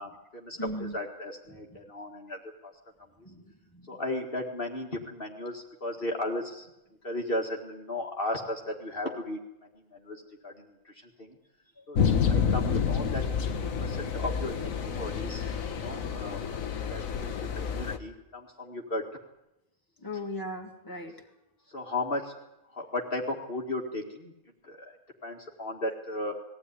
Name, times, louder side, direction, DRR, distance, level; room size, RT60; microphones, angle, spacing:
voice 1, 0.0-2.7 3.9-6.7 7.0-9.4 9.8-11.4 11.9-12.0 12.3-15.4 15.7-16.4 16.9-19.0 21.7-22.3 22.7-24.3 24.6-25.0 25.2-26.3, left 1 dB, 45° left, 0 dB, 2.2 m, -35 dB
voice 2, 0.6-1.0 1.7-1.8 3.2-4.0 11.8-11.9 20.0-21.1, left 1 dB, 15° left, 2 dB, 2.4 m, -38 dB
sound 1, 11.9-18.0, left 6 dB, 80° left, 1.7 m, -29 dB
21.0 x 15.5 x 9.8 m, 0.90 s
omnidirectional pair, 1.4 m